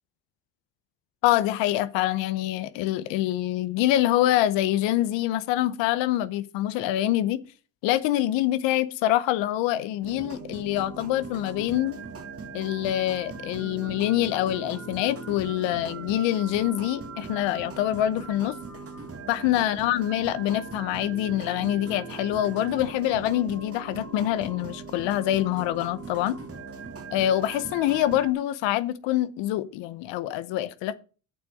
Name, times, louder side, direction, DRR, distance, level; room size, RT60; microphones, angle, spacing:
voice 1, 1.2-7.4 7.8-12.0 12.5-18.6 19.3-26.4 27.1-30.9, left 13 dB, 85° left, 0.8 m, -25 dB
sound 1, 10.0-28.3, right 4 dB, 30° right, 1.9 m, -40 dB
7.4 x 6.1 x 7.7 m
supercardioid pair, 80°, 43 cm